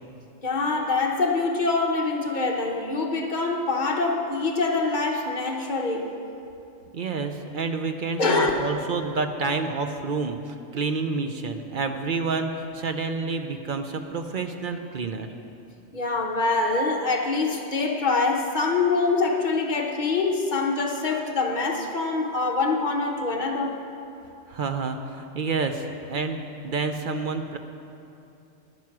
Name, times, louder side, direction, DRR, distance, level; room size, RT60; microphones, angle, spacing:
voice 1, 0.4-6.1 8.2-8.5 15.9-23.8, left 3 dB, 40° left, 1.1 m, -25 dB
voice 2, 6.9-15.3 24.5-27.6, right 4 dB, 50° right, 0.7 m, -29 dB
11.0 x 9.2 x 6.0 m
omnidirectional pair, 1.3 m